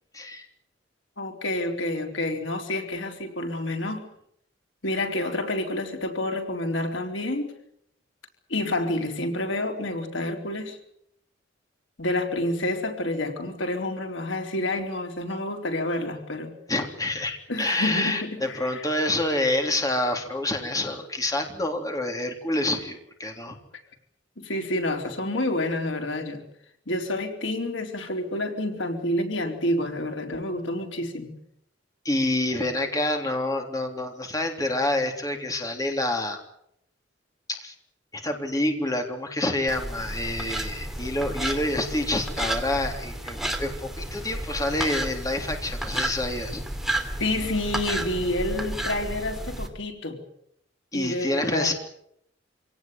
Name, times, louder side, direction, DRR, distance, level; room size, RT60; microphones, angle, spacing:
voice 1, 0.1-0.5 16.7-23.6 32.1-36.4 37.5-37.7 38.1-46.6 50.9-51.7, left 1 dB, 20° left, 4 dB, 3.5 m, -27 dB
voice 2, 1.2-4.1 4.8-7.5 8.5-10.8 12.0-16.5 17.5-18.9 24.4-26.5 26.9-31.3 47.2-50.2 50.9-51.7, left 1 dB, 85° left, 4 dB, 4.0 m, -29 dB
sound 1, 39.7-49.7, right 1 dB, ahead, 3.0 m, -32 dB
26.0 x 18.0 x 9.4 m, 0.74 s
head